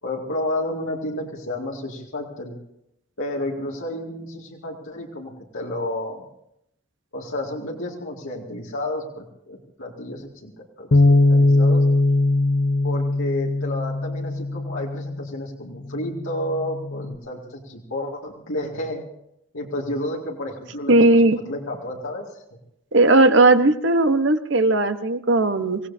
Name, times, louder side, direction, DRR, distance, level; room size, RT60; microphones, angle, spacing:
voice 1, 0.0-2.6 3.2-6.2 7.1-10.5 10.8-11.8 12.8-19.0 19.5-21.1 21.5-22.4, left 1 dB, 85° left, -3 dB, 2.4 m, -31 dB
Bass guitar, 10.9-15.3 16.0-17.1, left 2 dB, 50° left, 0.5 m, -20 dB
voice 2, 20.9-21.4 22.9-25.8, right 2 dB, 65° right, 9 dB, 1.2 m, -17 dB
26.0 x 17.5 x 2.8 m, 0.78 s
head